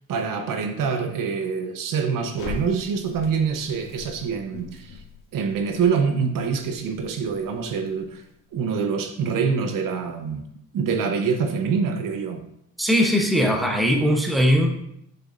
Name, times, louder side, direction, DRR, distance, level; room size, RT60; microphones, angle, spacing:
voice 1, 0.1-5.0 5.3-8.2 8.5-10.4 10.7-12.4, right 6 dB, 65° right, 6 dB, 0.9 m, -25 dB
Crackle, 2.4-8.5, left 4 dB, 70° left, 2.1 m, -42 dB
voice 2, 12.8-14.7, equal, ahead, 2 dB, 0.9 m, -20 dB
6.9 x 6.7 x 2.6 m, 0.74 s
cardioid pair, 120°, 35 cm